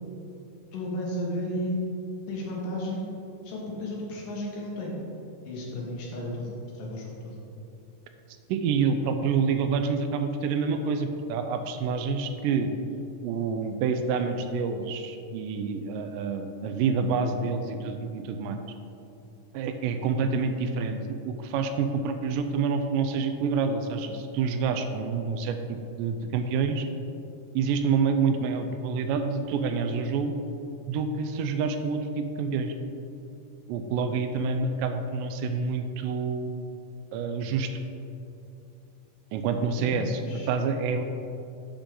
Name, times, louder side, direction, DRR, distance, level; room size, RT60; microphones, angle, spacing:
voice 1, 0.7-1.8 2.3-3.0 3.4-5.0 5.4-6.5 6.7-7.3 39.8-40.5, left 1 dB, 90° left, -3 dB, 3.2 m, -33 dB
voice 2, 8.5-12.7 13.2-18.6 19.5-21.0 21.3-26.9 27.6-30.4 30.9-32.7 33.7-36.7 37.1-37.7 39.3-41.0, right 5 dB, 90° right, 6 dB, 2.2 m, -27 dB
11.5 x 5.2 x 3.8 m, 2.8 s
omnidirectional pair, 3.7 m